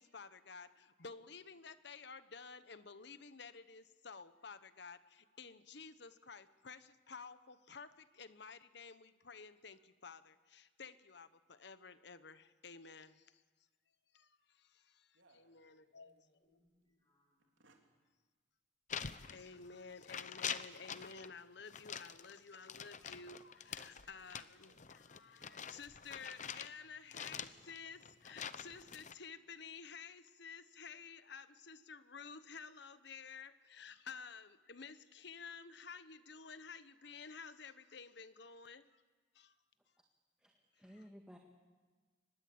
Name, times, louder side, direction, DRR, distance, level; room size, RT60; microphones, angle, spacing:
voice 1, 0.0-13.4 14.1-16.4 18.9-39.0 39.3-39.5 40.9-41.1, left 5 dB, 60° left, 13 dB, 1.1 m, -53 dB
sound 1, 15.1-16.2 16.7-16.8 17.4-17.9 19.3-19.5 20.8-21.3 21.8-21.9 22.8-23.2 23.6-25.9 27.3-27.6 28.5-28.9, right 2 dB, 85° right, 3.2 m, -71 dB
voice 2, 15.4-17.5, left 1 dB, 25° left, -5 dB, 7.3 m, -79 dB
sound 2, 18.9-19.8 20.0-21.3 21.7-26.7 27.1-29.1, left 7 dB, 40° left, 0.8 m, -45 dB
voice 3, 40.4-41.4, equal, 5° right, 1 dB, 1.8 m, -56 dB
24.5 x 20.0 x 8.7 m, 1.4 s
head